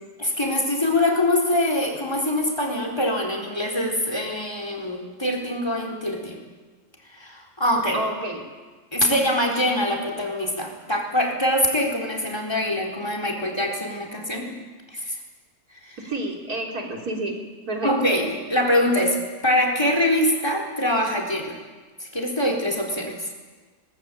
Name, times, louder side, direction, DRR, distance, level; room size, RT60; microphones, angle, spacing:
voice 1, 0.2-6.4 7.1-8.0 8.9-14.5 14.9-15.2 15.8-16.0 17.8-19.2 19.4-21.6 22.0-23.3, left 1 dB, 15° left, 2 dB, 4.2 m, -24 dB
voice 2, 7.9-8.4 16.0-17.4 17.7-17.9, right 2 dB, 55° right, 0 dB, 4.1 m, -29 dB
21.5 x 20.0 x 8.8 m, 1.4 s
omnidirectional pair, 1.9 m